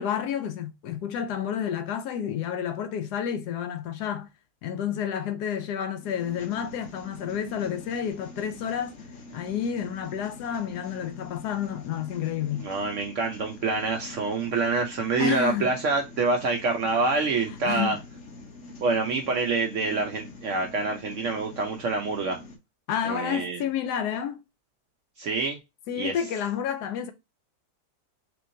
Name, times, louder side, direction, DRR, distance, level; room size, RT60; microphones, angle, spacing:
voice 1, 0.0-4.3 4.6-9.0 9.3-12.7 15.2-15.7 17.5-18.0 22.9-24.4 25.9-27.1, left 8 dB, 75° left, 1.1 m, -30 dB
sound 1, 6.0-22.6, left 2 dB, 55° left, 1.2 m, -45 dB
voice 2, 12.6-18.0 18.8-22.4 23.0-23.6 25.2-25.6 26.0-26.2, right 3 dB, 65° right, 0.8 m, -26 dB
3.4 x 3.0 x 2.5 m
omnidirectional pair, 1.8 m